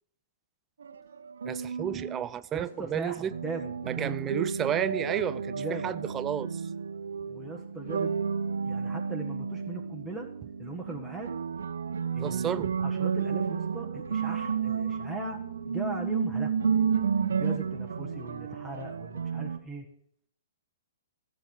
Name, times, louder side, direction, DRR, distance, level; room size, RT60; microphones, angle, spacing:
sound 1, 0.8-2.3 3.3-19.6, right 6 dB, 75° right, 1.0 m, -31 dB
voice 1, 1.4-3.3 3.8-6.6 12.2-12.8, right 9 dB, 20° right, 0.5 m, -32 dB
voice 2, 2.5-4.3 5.5-5.9 7.3-8.1 8.6-10.3 10.6-11.3 12.1-15.4 15.7-16.5 17.3-19.9, right 2 dB, 5° left, 1.5 m, -39 dB
15.5 x 6.3 x 7.0 m
hypercardioid pair, 125°, 0 cm